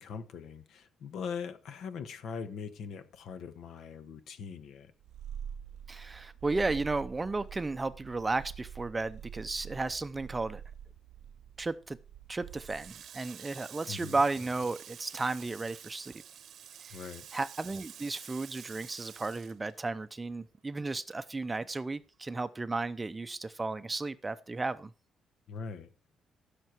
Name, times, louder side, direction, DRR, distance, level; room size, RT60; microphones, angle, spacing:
voice 1, 0.0-4.9 13.9-14.2 16.9-17.3 25.5-25.9, left 6 dB, 70° left, 1.3 m, -41 dB
Purr, 5.0-13.1, right 8 dB, 90° right, 0.6 m, -46 dB
voice 2, 5.9-10.6 11.6-12.0 12.3-16.1 16.8-17.0 17.3-24.9, right 3 dB, 20° right, 0.6 m, -34 dB
Water tap faucet, 12.5-20.4 20.7-22.0, right 9 dB, 60° right, 0.9 m, -50 dB
15.5 x 6.7 x 4.5 m
cardioid pair, 140°, 0 cm